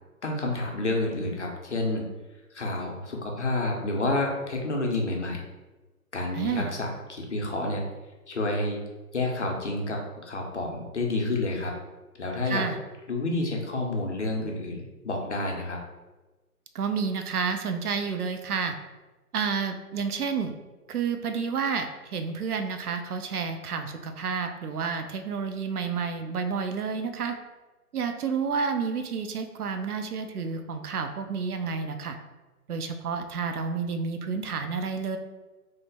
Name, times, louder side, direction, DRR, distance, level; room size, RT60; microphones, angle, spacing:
voice 1, 0.2-2.1 2.5-5.4 6.1-7.8 8.3-8.8 9.1-11.7 12.2-12.7 13.1-15.8, left 2 dB, 50° left, 0 dB, 0.6 m, -29 dB
voice 2, 6.3-6.7 12.5-12.8 16.7-18.7 19.3-20.6 20.9-27.4 27.9-32.2 32.7-35.2, right 5 dB, 75° right, 7 dB, 0.5 m, -30 dB
3.1 x 2.1 x 3.4 m, 1.2 s
figure-of-eight pair, 160°, 46 cm